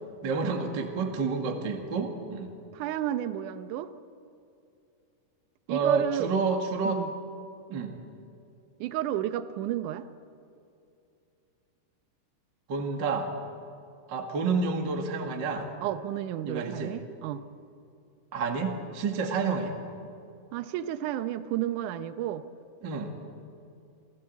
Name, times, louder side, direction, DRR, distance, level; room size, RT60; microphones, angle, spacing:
voice 1, 0.2-2.5 5.7-7.0 7.7-7.9 12.7-13.3 14.1-15.7 16.5-17.0 18.3-19.7 22.8-23.1, right 4 dB, 40° right, 3 dB, 1.8 m, -29 dB
voice 2, 2.7-3.9 5.7-6.3 6.8-7.1 8.8-10.1 15.8-17.4 20.5-22.4, right 12 dB, 75° right, 11 dB, 1.9 m, -31 dB
28.5 x 16.0 x 8.2 m, 2.6 s
omnidirectional pair, 4.5 m